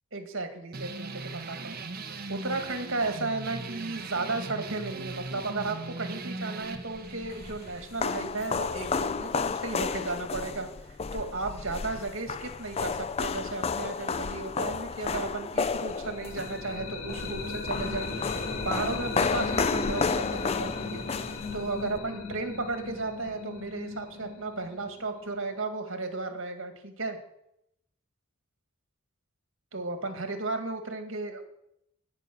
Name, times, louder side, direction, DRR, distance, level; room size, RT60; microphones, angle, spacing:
voice 1, 0.1-1.8 2.3-10.7 11.1-21.1 21.5-27.2 29.7-31.4, right 3 dB, 65° right, 5 dB, 2.0 m, -34 dB
sound 1, 0.7-9.8, right 3 dB, 45° right, 1.1 m, -40 dB
sound 2, 7.0-22.0, left 5 dB, 30° left, 0.4 m, -32 dB
sound 3, 15.8-25.5, left 4 dB, 80° left, 2.6 m, -37 dB
14.0 x 5.6 x 9.3 m, 0.79 s
head